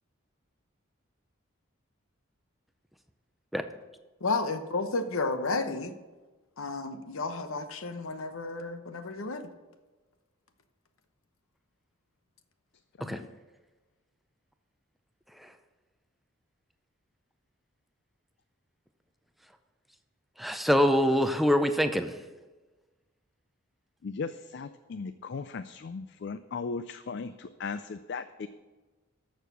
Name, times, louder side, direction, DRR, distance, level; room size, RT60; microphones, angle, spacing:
voice 1, 4.2-5.9 6.6-9.5, left 3 dB, 80° left, 9 dB, 0.9 m, -32 dB
voice 2, 13.0-13.3 24.0-28.5, left 4 dB, 55° left, 12 dB, 0.4 m, -37 dB
voice 3, 20.4-22.1, equal, ahead, 8 dB, 0.5 m, -24 dB
13.5 x 6.6 x 6.1 m, 1.2 s
head